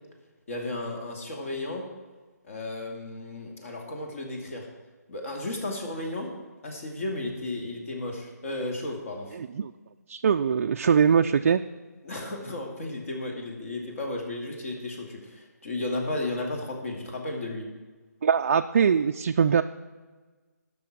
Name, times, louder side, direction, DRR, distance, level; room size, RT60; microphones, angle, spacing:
voice 1, 0.5-1.8 2.5-4.7 5.1-6.3 6.6-9.4 12.0-17.7, left 2 dB, 50° left, 1 dB, 2.7 m, -34 dB
voice 2, 9.4-9.7 10.1-11.6 18.2-19.6, right 7 dB, 45° right, 5 dB, 0.4 m, -22 dB
13.0 x 6.1 x 6.2 m, 1.3 s
hypercardioid pair, 160°, 9 cm